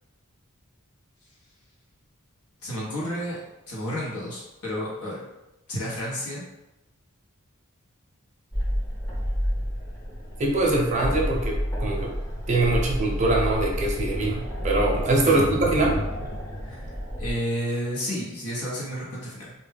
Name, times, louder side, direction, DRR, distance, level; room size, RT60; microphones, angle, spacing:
voice 1, 2.6-3.4 3.7-5.2 5.7-6.4 15.2-15.5 16.6-16.9 17.2-19.5, equal, 80° left, -5 dB, 0.9 m, -31 dB
sound 1, 8.5-17.3, equal, 15° left, 0.6 m, -30 dB
voice 2, 10.4-12.1 12.5-16.0, right 2 dB, 35° right, -1 dB, 0.5 m, -23 dB
2.2 x 2.1 x 3.3 m, 0.94 s
head